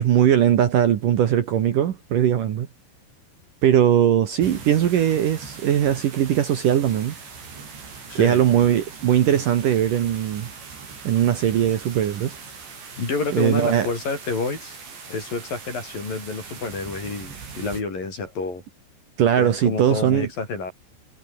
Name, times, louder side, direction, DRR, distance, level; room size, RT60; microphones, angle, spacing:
voice 1, 0.0-2.7 3.6-7.1 8.1-10.5 11.0-12.4 13.3-13.9 19.2-20.3, right 10 dB, 60° right, 2.7 m, -20 dB
sound 1, 4.4-17.8, right 5 dB, 85° right, 9.1 m, -40 dB
voice 2, 8.1-8.4 13.0-14.8 15.1-18.6 19.4-20.7, left 4 dB, 50° left, 9.0 m, -29 dB
omnidirectional pair, 5.0 m